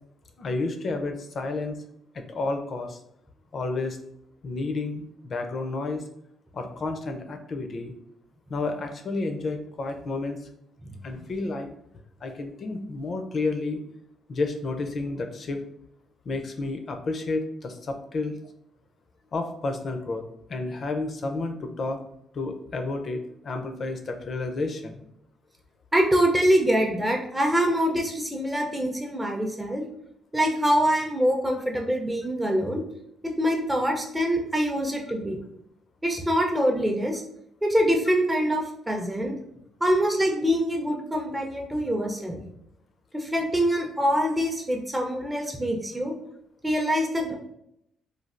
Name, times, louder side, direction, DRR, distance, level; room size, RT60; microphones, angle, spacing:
voice 1, 0.4-1.8 2.1-3.0 3.5-4.0 4.4-6.0 6.5-7.9 8.5-10.4 11.0-11.7 12.2-13.8 14.3-15.6 16.3-18.3 19.3-20.2 20.5-22.0 22.3-25.1, left 3 dB, 50° left, 6 dB, 0.4 m, -31 dB
voice 2, 25.9-29.8 30.3-32.8 33.2-35.4 36.0-37.2 37.6-39.4 39.8-42.4 43.1-46.1 46.6-47.3, equal, 15° right, 1 dB, 0.5 m, -24 dB
3.2 x 2.3 x 2.4 m, 0.75 s
cardioid pair, 90°, 0 cm